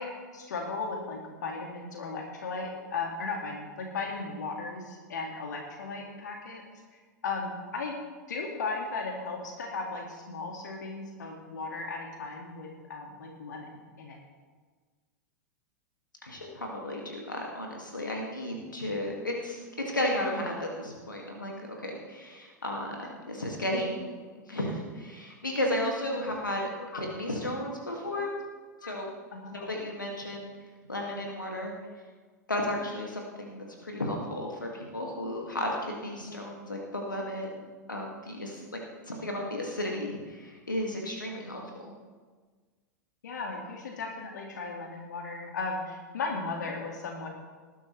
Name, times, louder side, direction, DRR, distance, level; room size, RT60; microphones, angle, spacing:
voice 1, 0.0-6.6 7.2-7.9 8.3-14.2 19.0-19.2 26.2-26.3 26.8-27.0 28.1-28.3 28.8-28.9 29.3-29.7 43.2-47.3, left 4 dB, 70° left, 1 dB, 2.1 m, -36 dB
voice 2, 16.2-19.6 19.9-21.5 21.8-26.6 26.9-28.3 28.8-29.1 29.5-30.5 30.9-31.7 32.5-38.6 39.1-41.9, left 1 dB, 85° left, 0 dB, 2.3 m, -34 dB
19.5 x 11.5 x 3.3 m, 1.4 s
figure-of-eight pair, 95°, 10 cm